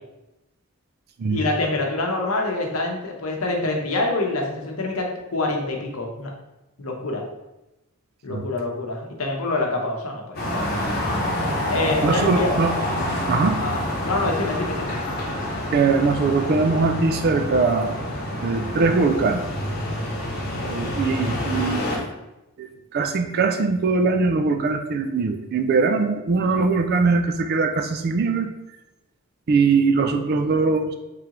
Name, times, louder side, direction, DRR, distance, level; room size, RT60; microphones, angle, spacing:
voice 1, 1.3-6.3 6.8-7.2 8.2-10.8 11.7-12.5 13.6-14.9 20.6-20.9, left 2 dB, 85° left, 1 dB, 0.8 m, -26 dB
sound 1, 10.3-22.0, left 1 dB, 45° left, 0.9 m, -27 dB
voice 2, 12.0-12.7 13.3-13.6 15.7-17.9 18.4-19.4 20.7-21.8 22.6-28.5 29.5-31.0, right 4 dB, 50° right, 7 dB, 0.3 m, -21 dB
3.7 x 3.2 x 3.0 m, 0.95 s
head